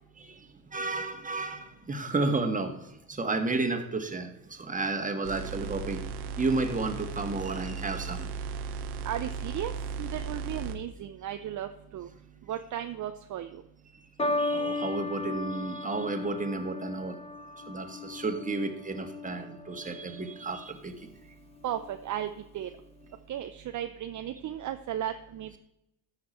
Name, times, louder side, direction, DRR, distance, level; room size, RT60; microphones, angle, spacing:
voice 1, 0.2-6.0 6.4-8.3 14.4-17.2 17.7-21.1, right 3 dB, 20° right, 6 dB, 1.7 m, -32 dB
sound 1, 5.2-10.8, right 5 dB, 80° right, 1.1 m, -36 dB
voice 2, 9.0-9.7 10.0-12.1 12.5-13.6 21.6-22.7 23.3-25.6, right 11 dB, 45° right, 7 dB, 0.7 m, -35 dB
sound 2, 14.2-20.7 21.6-22.0, left 2 dB, 15° left, 1.1 m, -35 dB
13.5 x 6.0 x 4.4 m, 0.82 s
hypercardioid pair, 65°, 43 cm